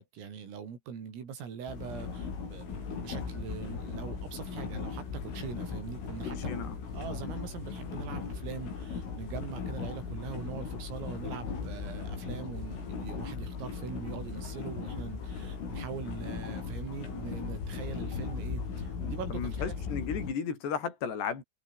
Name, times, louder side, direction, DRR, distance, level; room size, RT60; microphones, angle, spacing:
voice 1, 0.0-6.6 6.9-19.7, right 7 dB, 85° right, 7.8 m, -42 dB
sound 1, 1.7-20.3, left 5 dB, 75° left, 9.6 m, -38 dB
voice 2, 6.3-6.8 19.3-21.4, left 6 dB, 55° left, 7.3 m, -34 dB
omnidirectional pair, 5.8 m